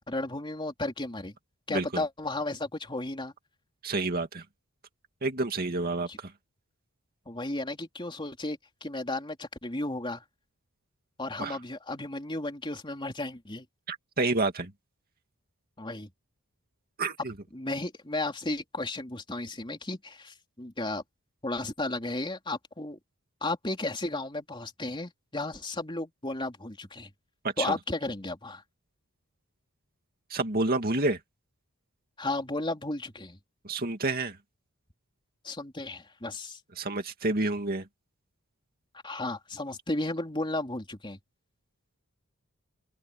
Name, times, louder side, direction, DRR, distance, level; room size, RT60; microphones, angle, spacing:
voice 1, 0.1-1.4 1.7-3.3 6.1-6.2 7.3-10.2 11.2-13.7 15.8-16.1 17.5-21.0 21.4-23.0 23.4-27.1 27.6-28.6 32.2-33.4 35.4-36.6 39.0-41.2, left 2 dB, 20° left, 3.5 m, -34 dB
voice 2, 1.7-2.0 3.8-4.4 5.2-6.3 11.4-11.6 13.9-14.7 17.0-17.3 27.4-27.8 30.3-31.2 33.6-34.4 36.8-37.9, right 2 dB, 45° right, 2.3 m, -29 dB
head